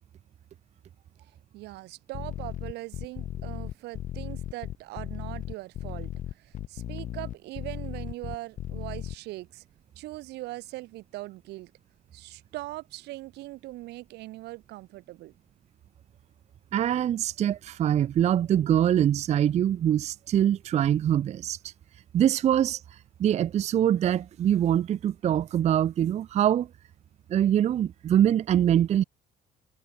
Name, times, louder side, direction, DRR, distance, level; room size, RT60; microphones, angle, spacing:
voice 1, 1.5-9.6 10.0-11.7 12.1-15.3, right 18 dB, 80° right, 0.8 m, -41 dB
sound 1, 2.1-9.1, left 11 dB, 50° left, 0.7 m, -36 dB
voice 2, 16.7-21.6 22.1-22.8 23.2-26.7 27.3-29.0, right 10 dB, 40° right, 0.4 m, -23 dB
cardioid pair, 110°, 17 cm